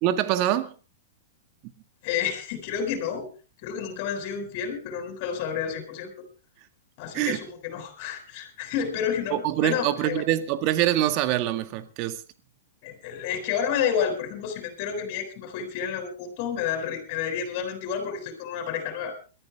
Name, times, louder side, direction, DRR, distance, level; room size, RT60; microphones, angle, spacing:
voice 1, 0.0-0.7 7.1-7.4 9.3-12.2, right 13 dB, 45° right, 1.9 m, -24 dB
voice 2, 2.0-3.3 3.6-6.1 7.0-10.2 12.8-19.2, left 8 dB, 45° left, 7.9 m, -30 dB
22.0 x 14.5 x 3.6 m
hypercardioid pair, 120°, 0 cm